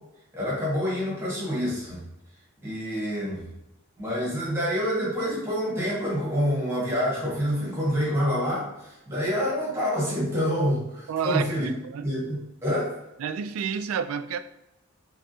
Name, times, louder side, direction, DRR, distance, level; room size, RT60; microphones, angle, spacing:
voice 1, 0.3-2.0 2.6-3.5 4.0-11.7 12.0-13.0, equal, 15° right, 1.4 m, -27 dB
voice 2, 11.1-12.2 13.2-14.4, right 7 dB, 80° right, 0.3 m, -30 dB
3.5 x 3.2 x 2.6 m
head